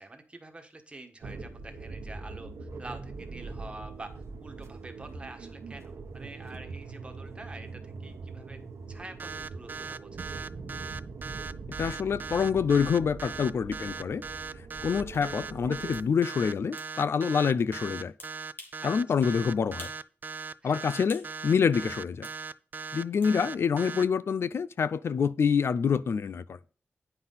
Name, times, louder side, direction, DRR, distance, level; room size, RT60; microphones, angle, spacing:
voice 1, 0.0-8.6 8.9-10.5 18.8-19.0 20.6-20.8, right 2 dB, 25° right, 1.4 m, -47 dB
sound 1, 1.2-16.1, right 4 dB, 90° right, 1.1 m, -42 dB
sound 2, 9.2-24.0, right 5 dB, 45° right, 0.3 m, -39 dB
voice 2, 11.8-14.2 14.6-18.1 18.8-19.9 20.6-22.3 22.9-26.6, left 6 dB, 65° left, 0.3 m, -26 dB
sound 3, 15.1-15.3 15.9-16.1 16.8-16.9 18.2-18.8 19.2-19.3 19.8-20.1 20.4-21.3 22.2-22.4 23.2-23.4, left 2 dB, 45° left, 2.1 m, -48 dB
9.7 x 5.6 x 4.0 m
wide cardioid pair, 130°, 5 cm